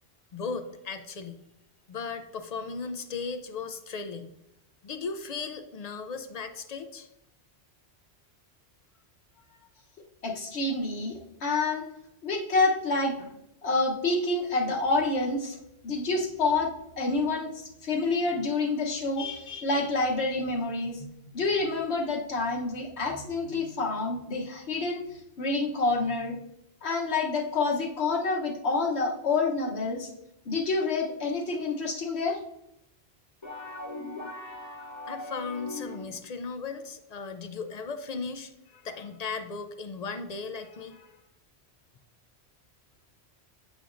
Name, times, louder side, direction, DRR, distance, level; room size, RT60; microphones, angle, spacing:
voice 1, 0.3-1.4 1.9-4.3 4.8-7.1 35.1-41.2, left 4 dB, 55° left, 9 dB, 0.4 m, -37 dB
voice 2, 10.2-11.9 12.2-13.3 13.6-15.6 15.8-21.1 21.3-26.4 26.8-30.1 30.5-32.4, left 3 dB, 75° left, 0 dB, 1.3 m, -28 dB
sound 1, 33.4-36.3, left 1 dB, 25° left, 1.0 m, -39 dB
8.1 x 5.1 x 2.5 m, 0.84 s
omnidirectional pair, 1.1 m